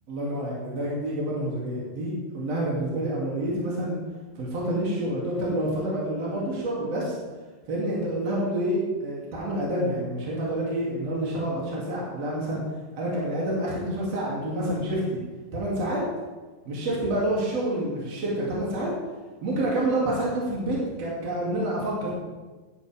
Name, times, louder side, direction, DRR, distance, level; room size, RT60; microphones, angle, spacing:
voice 1, 0.1-4.0 4.4-7.1 7.7-12.6 13.0-15.2 15.5-16.0 16.7-18.9 19.4-22.1, right 1 dB, 40° right, -6 dB, 3.8 m, -28 dB
15.5 x 12.0 x 3.7 m, 1.3 s
omnidirectional pair, 4.9 m